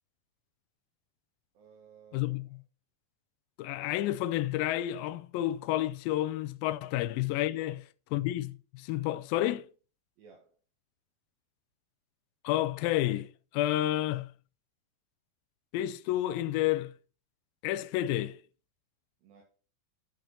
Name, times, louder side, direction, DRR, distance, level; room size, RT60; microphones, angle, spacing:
voice 1, 1.5-2.5 6.8-6.9 7.5-7.8 10.2-10.6 19.2-19.4, right 6 dB, 70° right, 3.1 m, -57 dB
voice 2, 2.1-2.4 3.6-7.8 8.1-9.7 12.4-13.3 13.5-14.3 15.7-16.9 17.6-18.4, left 14 dB, 85° left, 2.1 m, -30 dB
14.0 x 6.0 x 2.8 m
omnidirectional pair, 4.6 m